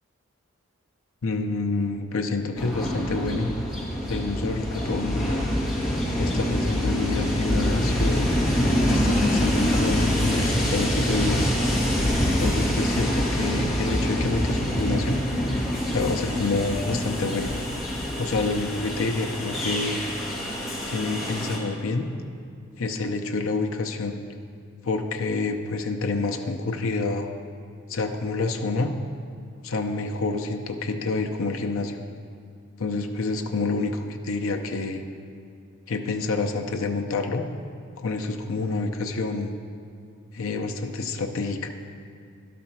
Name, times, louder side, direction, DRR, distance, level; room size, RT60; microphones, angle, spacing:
voice 1, 1.2-3.5 4.1-5.5 6.2-8.3 8.9-11.5 12.4-15.2 15.9-17.5 18.2-20.0 20.8-22.1 22.8-24.2 24.8-27.3 27.9-28.9 29.6-32.1 32.8-35.0 35.9-37.5 38.0-39.6 40.3-41.7, left 3 dB, 75° left, 4 dB, 0.6 m, -28 dB
Train, 2.6-21.6, equal, ahead, 1.4 m, -25 dB
11.5 x 4.2 x 5.8 m, 2.4 s
head